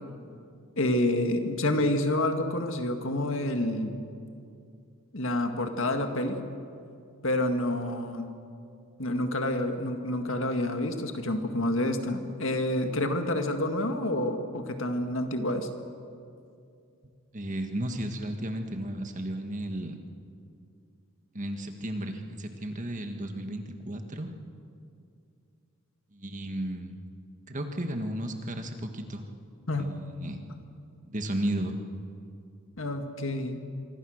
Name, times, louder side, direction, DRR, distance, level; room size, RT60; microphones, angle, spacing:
voice 1, 0.8-4.0 5.1-6.4 7.2-8.3 9.0-15.7 29.7-29.9 32.8-33.6, left 1 dB, 60° left, 6 dB, 1.9 m, -28 dB
voice 2, 17.3-20.0 21.3-24.3 26.1-26.9 27.5-29.3 29.8-30.4 31.1-31.8, right 1 dB, 35° right, 5 dB, 1.8 m, -34 dB
25.5 x 24.5 x 6.5 m, 2.5 s
head